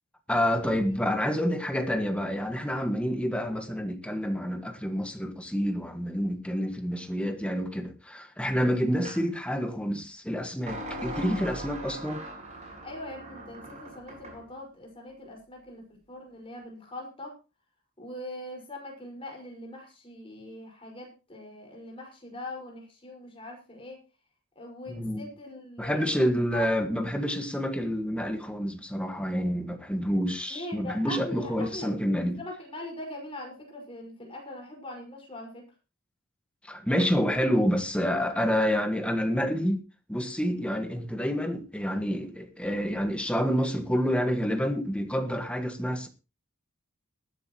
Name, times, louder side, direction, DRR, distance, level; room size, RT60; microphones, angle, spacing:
voice 1, 0.3-12.2 24.9-25.2 25.8-32.4 36.6-39.8 40.1-46.1, equal, 5° left, 1.5 m, -28 dB
sound 1, 9.0-9.2 10.7-14.4, right 1 dB, 35° right, 6.8 m, -40 dB
voice 2, 12.8-17.3 18.0-24.0 24.6-26.7 30.5-31.9 32.4-35.6, left 1 dB, 25° left, 5.1 m, -42 dB
20.0 x 11.0 x 3.0 m
head